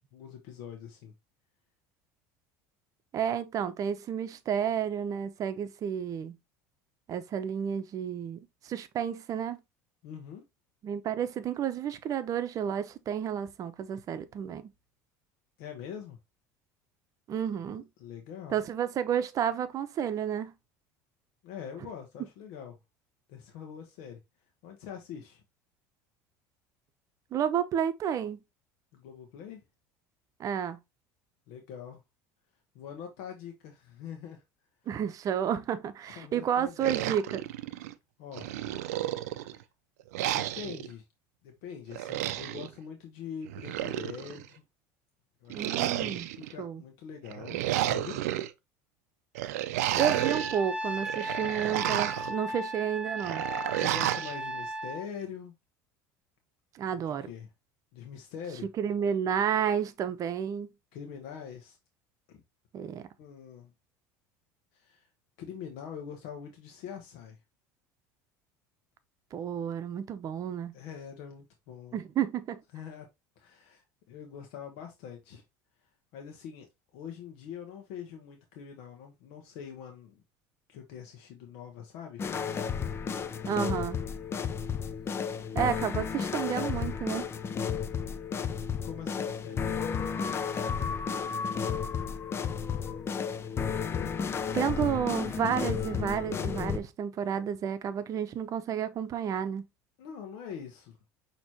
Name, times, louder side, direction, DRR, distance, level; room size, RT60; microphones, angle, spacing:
voice 1, 0.1-1.1 10.0-10.4 15.6-16.2 17.7-18.6 21.4-22.8 23.3-24.2 24.6-25.4 28.9-29.6 31.5-32.0 32.7-34.4 36.1-37.1 38.2-38.5 39.3-39.6 40.3-41.0 41.4-44.6 45.4-48.2 53.7-55.5 56.9-57.5 57.9-58.7 60.9-61.8 63.2-63.7 64.7-65.1 65.4-67.4 70.7-72.0 72.7-73.1 73.4-75.4 76.1-76.7 76.9-80.2 80.7-82.2 88.8-89.9 93.8-94.1 100.0-101.0, left 8 dB, 70° left, 1.0 m, -44 dB
voice 2, 3.1-6.3 7.1-9.6 10.8-14.7 17.3-17.8 18.5-20.5 27.3-28.4 30.4-30.8 34.9-37.4 45.5-46.3 46.6-46.8 50.0-53.4 56.7-57.3 58.8-60.7 62.7-63.1 69.3-70.7 71.9-72.6 83.5-84.0 85.5-87.3 94.5-99.6, right 8 dB, 45° right, 0.7 m, -31 dB
sound 1, 36.8-37.9 38.4-39.6 40.1-40.9 41.9-42.7 43.5-44.5 45.5-46.5 47.3-48.5 49.4-50.6 51.0-52.3 53.2-54.3, right 13 dB, 90° right, 0.4 m, -31 dB
Trumpet, 50.0-55.0, right 1 dB, 10° right, 0.9 m, -36 dB
sound 2, 82.2-96.8, left 6 dB, 30° left, 0.5 m, -32 dB
6.1 x 2.9 x 2.7 m
supercardioid pair, 100°, 8 cm